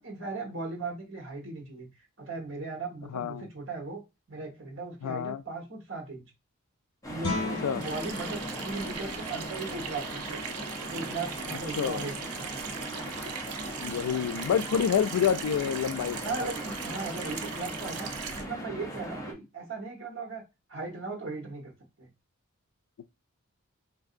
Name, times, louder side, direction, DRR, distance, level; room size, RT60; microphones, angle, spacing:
voice 1, 0.0-1.9 2.2-4.0 4.3-6.3 7.1-10.4 10.8-12.1 12.4-12.5 16.2-20.4 20.7-21.7 22.0-22.1, right 3 dB, 55° right, 1.1 m, -37 dB
voice 2, 3.1-3.5 5.0-5.4 7.4-7.8 11.8-12.1 13.8-16.5, left 8 dB, 85° left, 0.3 m, -28 dB
sound 1, 7.0-19.3, equal, 15° left, 0.5 m, -39 dB
Guitar, 7.2-12.8, left 2 dB, 60° left, 1.3 m, -40 dB
Water tap faucet / Sink (filling or washing), 7.8-18.4, right 7 dB, 85° right, 0.5 m, -39 dB
3.7 x 2.5 x 2.5 m
head